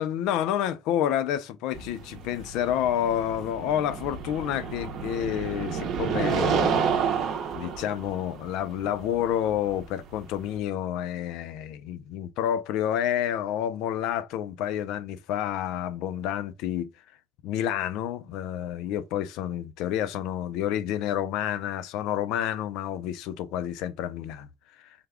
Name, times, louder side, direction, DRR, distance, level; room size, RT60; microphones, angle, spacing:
voice 1, 0.0-6.9 7.5-16.9 17.4-24.5 24.8-24.9, left 10 dB, 65° left, 0.4 m, -29 dB
sound 1, 1.7-10.6, right 6 dB, 45° right, 0.7 m, -30 dB
3.5 x 2.2 x 3.5 m
cardioid pair, 165°, 0 cm